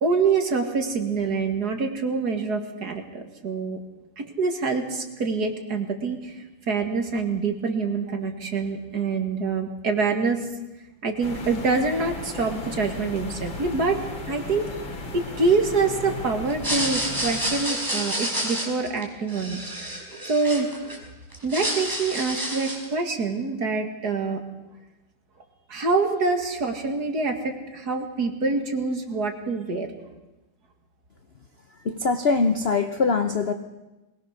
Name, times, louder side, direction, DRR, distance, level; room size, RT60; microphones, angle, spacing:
voice 1, 0.0-3.8 4.2-10.5 11.0-14.0 14.3-14.7 15.1-20.0 20.2-20.8 21.4-24.4 25.7-29.9, right 4 dB, 55° right, 4 dB, 2.5 m, -26 dB
sound 1, 11.2-17.6, left 2 dB, 80° left, 3.2 m, -36 dB
sound 2, 16.5-21.0 21.3-22.9, right 1 dB, 10° right, 4.1 m, -29 dB
voice 2, 31.8-33.5, left 4 dB, 50° left, 8 dB, 0.7 m, -22 dB
22.0 x 19.5 x 6.5 m, 1.1 s
omnidirectional pair, 2.1 m